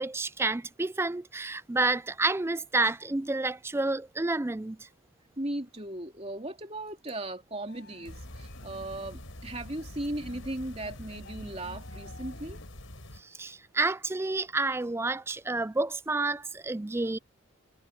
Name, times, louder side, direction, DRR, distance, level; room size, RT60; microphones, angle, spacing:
voice 1, 0.0-4.9 13.2-17.2, right 3 dB, 10° right, 0.4 m, -29 dB
voice 2, 5.4-12.6, right 1 dB, 30° right, 3.2 m, -37 dB
sound 1, 7.7-12.7, left 2 dB, 55° left, 4.7 m, -53 dB
sound 2, 8.1-13.2, left 1 dB, 75° left, 4.9 m, -45 dB
head